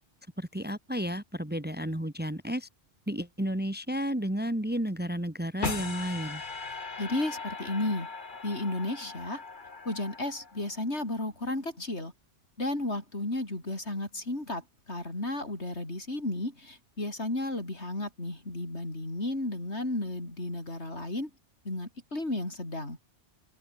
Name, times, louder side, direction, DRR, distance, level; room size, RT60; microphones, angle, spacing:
voice 1, 0.4-2.7 3.1-6.4, equal, 10° right, 1.6 m, -32 dB
sound 1, 5.6-10.8, left 4 dB, 45° left, 1.9 m, -39 dB
voice 2, 7.0-8.1 8.4-9.4 9.8-12.1 12.6-21.3 21.6-23.0, left 2 dB, 70° left, 6.3 m, -33 dB
open air
omnidirectional pair, 1.2 m